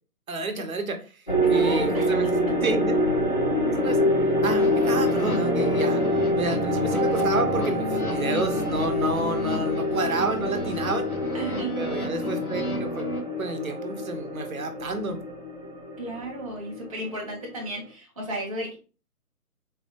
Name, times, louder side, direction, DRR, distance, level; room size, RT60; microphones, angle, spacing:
voice 1, 0.3-1.0 1.5-2.3 2.6-2.9 3.8-4.0 4.4-6.0 6.3-11.1 11.8-13.1 13.4-15.2, right 3 dB, 65° right, 6 dB, 0.8 m, -29 dB
sound 1, 1.3-17.8, equal, 35° left, 0.4 m, -26 dB
voice 2, 1.4-2.3 11.3-11.7 16.0-18.8, equal, 25° right, -4 dB, 0.6 m, -33 dB
sound 2, 4.5-13.2, left 1 dB, 70° left, 1.0 m, -34 dB
4.0 x 2.3 x 2.7 m, 0.34 s
figure-of-eight pair, 145°, 46 cm